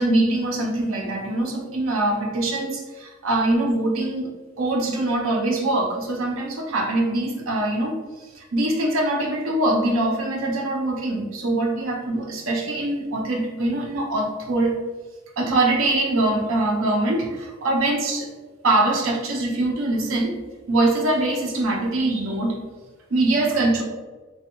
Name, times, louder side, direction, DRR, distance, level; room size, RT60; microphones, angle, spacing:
voice 1, 0.0-4.3 4.6-8.0 8.3-14.7 15.4-18.3 18.6-20.3 20.7-22.6 23.1-23.8, right 2 dB, 90° right, 0 dB, 0.6 m, -23 dB
3.1 x 2.2 x 2.9 m, 1.3 s
head